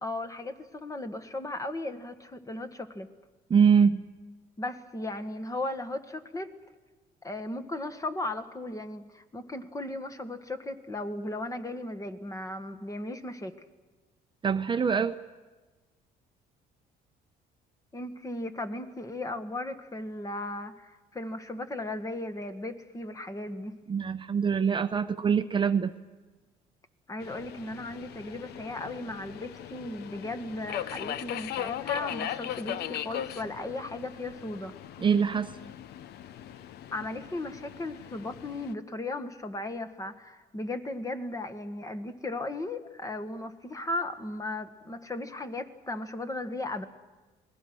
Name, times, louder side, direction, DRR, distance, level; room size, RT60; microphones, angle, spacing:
voice 1, 0.0-3.1 4.6-6.5 7.2-13.5 17.9-23.8 27.1-34.7 36.9-46.9, left 2 dB, 20° left, 8 dB, 1.7 m, -36 dB
voice 2, 3.5-4.0 14.4-15.2 23.9-25.9 35.0-35.5, right 6 dB, 30° right, 9 dB, 0.8 m, -24 dB
Subway metro underground, 27.2-38.7, left 11 dB, 75° left, 0.9 m, -39 dB
29.0 x 20.0 x 6.2 m, 1.2 s
cardioid pair, 110°, 17 cm